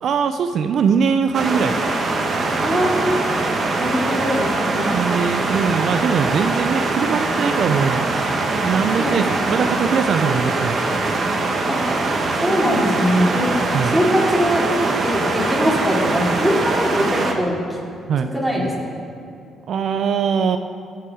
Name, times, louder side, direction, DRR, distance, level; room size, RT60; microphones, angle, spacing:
voice 1, 0.0-1.8 4.9-8.1 8.6-10.9 13.7-14.0 18.1-18.3 19.7-20.6, right 6 dB, 65° right, 8 dB, 0.4 m, -21 dB
sound 1, 1.3-17.3, right 3 dB, 45° right, 1.3 m, -22 dB
voice 2, 2.6-3.2 3.8-4.9 9.0-9.2 11.7-11.9 12.3-13.6 13.9-14.7 15.0-17.6 18.2-18.7, equal, 5° right, -4 dB, 2.7 m, -21 dB
16.5 x 5.6 x 5.0 m, 2.6 s
cardioid pair, 90°, 0 cm